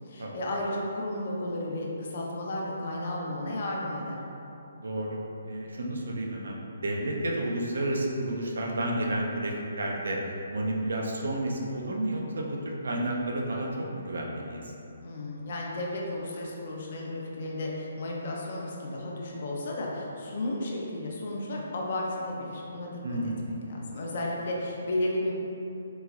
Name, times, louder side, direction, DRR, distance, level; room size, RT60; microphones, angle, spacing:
voice 1, 0.1-4.2 15.0-23.0 23.4-25.3, left 1 dB, 55° left, -3 dB, 0.6 m, -33 dB
voice 2, 4.8-5.2 5.5-10.2 10.5-14.7 23.0-23.6, right 1 dB, 70° right, -1 dB, 0.5 m, -31 dB
3.7 x 3.0 x 2.4 m, 2.9 s
figure-of-eight pair, 145°, 0 cm